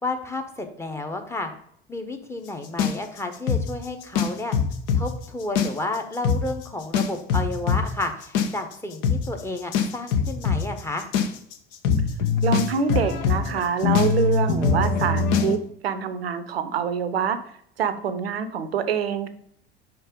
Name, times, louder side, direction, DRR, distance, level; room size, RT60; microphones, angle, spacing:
voice 1, 0.0-1.5 1.9-4.5 4.9-11.1, left 2 dB, 10° left, 4 dB, 1.0 m, -31 dB
sound 1, 2.8-5.0 5.4-6.0 6.2-6.4 6.9-15.6, left 6 dB, 55° left, 0.9 m, -22 dB
voice 2, 12.4-17.4 17.8-19.3, right 7 dB, 75° right, 11 dB, 0.7 m, -25 dB
5.4 x 4.5 x 5.3 m, 0.67 s
figure-of-eight pair, 70°, 31 cm